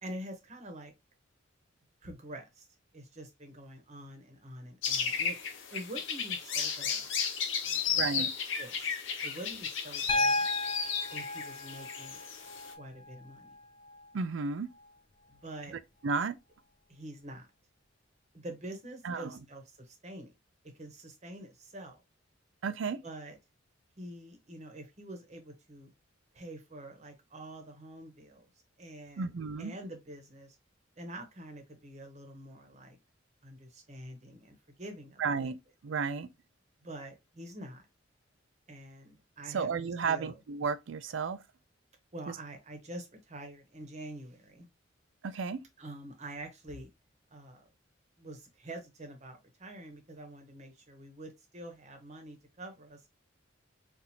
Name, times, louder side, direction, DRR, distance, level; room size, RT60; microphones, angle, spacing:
voice 1, 0.0-0.9 2.0-2.7 2.9-5.4 5.7-7.1 7.6-8.3 8.6-8.9 9.2-10.5 11.1-12.2 12.8-13.5 15.3-15.7 16.9-17.5 18.3-20.3 20.7-22.0 23.0-23.4 24.0-25.9 26.3-28.5 28.8-29.3 29.6-30.6 31.0-33.0 33.4-35.5 36.8-37.9 38.7-39.7 40.1-40.4 42.1-44.7 45.8-46.9 47.3-47.7 48.2-53.0, right 1 dB, 35° right, 1.0 m, -46 dB
sound 1, 4.8-12.7, left 6 dB, 70° left, 0.8 m, -34 dB
voice 2, 8.0-8.3 14.1-14.7 16.0-16.4 19.0-19.3 22.6-23.0 29.2-29.7 35.2-35.6 35.8-36.3 39.5-41.4 45.2-45.6, right 5 dB, 70° right, 0.4 m, -32 dB
Piano, 10.1-14.1 15.7-15.8, left 2 dB, 25° left, 0.5 m, -34 dB
4.1 x 2.6 x 2.8 m
head